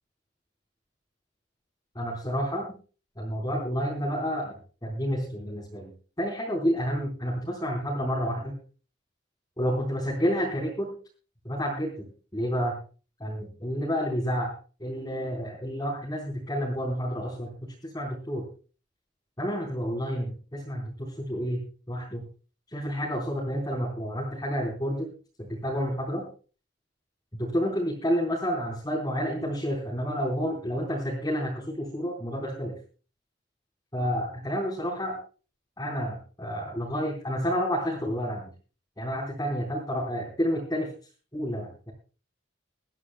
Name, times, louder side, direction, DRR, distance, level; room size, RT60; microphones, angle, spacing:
voice 1, 1.9-2.7 3.2-8.6 9.6-10.9 11.4-12.0 12.3-12.8 13.2-14.5 14.8-18.5 19.4-21.6 21.9-22.2 22.7-25.1 25.4-26.2 27.3-32.7 33.9-35.1 35.8-38.5 39.0-40.9 41.3-41.9, equal, 20° left, -4 dB, 4.1 m, -30 dB
23.0 x 14.0 x 2.2 m, 0.37 s
head